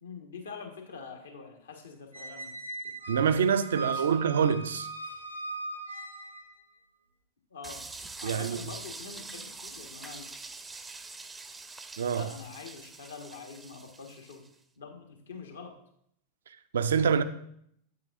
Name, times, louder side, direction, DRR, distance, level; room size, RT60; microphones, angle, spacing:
voice 1, 0.0-2.6 3.5-4.2 7.5-7.8 8.2-10.3 12.2-14.4 14.8-15.7, left 5 dB, 70° left, 1.4 m, -45 dB
Squeak, 2.1-6.6, right 3 dB, 85° right, 1.0 m, -39 dB
voice 2, 3.1-4.9 8.2-8.6 12.0-12.3 16.5-17.2, right 7 dB, 65° right, 0.5 m, -26 dB
sound 1, 7.6-14.5, right 3 dB, 10° right, 0.6 m, -44 dB
8.6 x 8.5 x 2.6 m
figure-of-eight pair, 90°, 0 cm